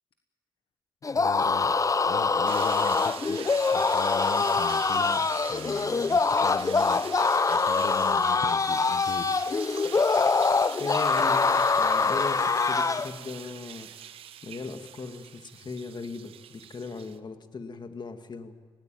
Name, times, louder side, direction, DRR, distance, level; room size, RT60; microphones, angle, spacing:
sound 1, 1.0-13.1, left 4 dB, 35° left, 0.7 m, -24 dB
voice 1, 1.1-7.0 7.5-9.4, left 6 dB, 70° left, 6 dB, 1.3 m, -39 dB
sound 2, 2.5-17.2, right 10 dB, 85° right, 0.7 m, -43 dB
voice 2, 10.8-14.0 14.4-18.5, left 4 dB, 55° left, 7 dB, 2.0 m, -38 dB
20.0 x 17.5 x 9.1 m, 1.5 s
supercardioid pair, 50°, 9 cm